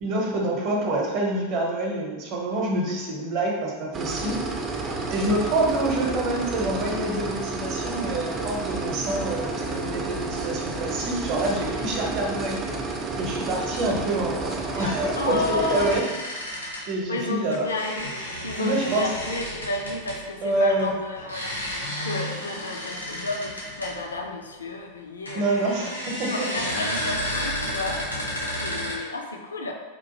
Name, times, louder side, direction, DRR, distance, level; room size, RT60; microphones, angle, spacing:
voice 1, 0.0-4.4 5.1-12.6 13.2-16.0 16.9-17.6 18.6-19.1 20.4-20.9 25.3-26.5, right 1 dB, 40° right, -1 dB, 0.8 m, -26 dB
sound 1, 3.9-16.0, right 3 dB, 25° right, 0.4 m, -30 dB
sound 2, 13.9-14.0 14.5-16.8 17.5-24.3 25.3-28.9, equal, 90° left, 1.1 m, -32 dB
voice 2, 15.2-15.9 17.1-18.1 18.4-25.9 26.3-28.2 28.6-29.7, left 2 dB, 70° left, 3 dB, 0.4 m, -31 dB
4.3 x 2.5 x 2.8 m, 1.3 s
figure-of-eight pair, 90°, 0 cm